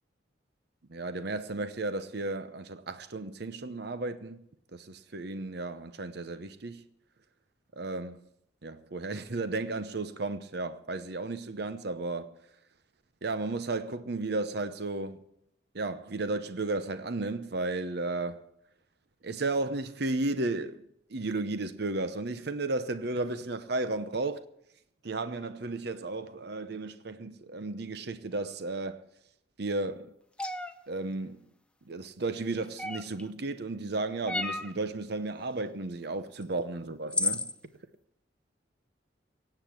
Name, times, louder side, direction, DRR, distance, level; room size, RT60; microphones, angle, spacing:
voice 1, 0.9-4.4 4.7-6.8 7.8-8.2 8.6-12.3 13.2-15.2 15.7-18.4 19.2-20.8 21.1-24.4 25.0-29.0 29.6-30.1 30.9-31.4 31.9-37.5, right 2 dB, 60° right, 0.8 m, -34 dB
sound 1, 30.4-30.7 32.8-33.2 34.3-34.7 36.4-36.5 37.1-37.5, left 2 dB, 5° left, 0.7 m, -31 dB
17.5 x 8.0 x 8.1 m
head